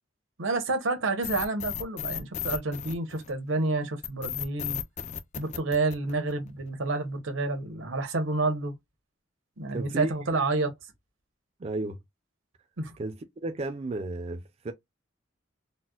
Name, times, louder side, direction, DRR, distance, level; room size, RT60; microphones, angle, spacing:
voice 1, 0.4-4.8 5.4-8.7 9.6-10.7 12.8-12.9, right 3 dB, 90° right, 0.9 m, -29 dB
sound 1, 1.2-3.5 4.0-6.5, left 10 dB, 40° left, 0.4 m, -34 dB
voice 2, 9.7-10.1 11.6-12.0 13.0-14.7, right 2 dB, 35° right, 0.4 m, -33 dB
4.1 x 2.0 x 2.3 m
head